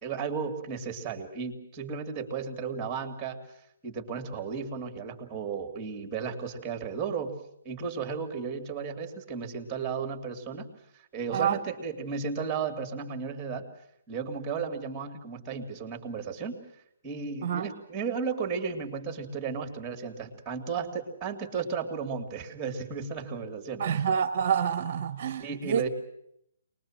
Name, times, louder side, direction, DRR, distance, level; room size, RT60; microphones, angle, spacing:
voice 1, 0.0-3.4 3.8-7.3 7.6-10.7 11.1-13.7 14.1-16.6 17.0-23.9 25.4-25.9, right 5 dB, 15° right, 2.8 m, -34 dB
voice 2, 23.8-25.8, right 8 dB, 50° right, 1.0 m, -27 dB
24.0 x 21.0 x 7.5 m
hypercardioid pair, 155°, 0 cm